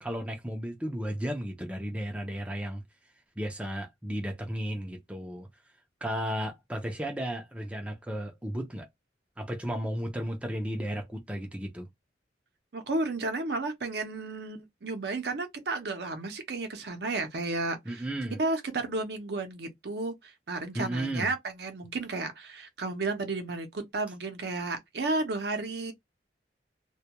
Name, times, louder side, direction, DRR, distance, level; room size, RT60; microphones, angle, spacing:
voice 1, 0.0-2.8 3.4-5.5 6.0-8.9 9.4-11.9 17.9-18.4 20.7-21.3, equal, 5° right, 0.4 m, -34 dB
voice 2, 12.7-18.0 18.4-25.9, right 3 dB, 65° right, 0.6 m, -33 dB
2.2 x 2.2 x 2.8 m
head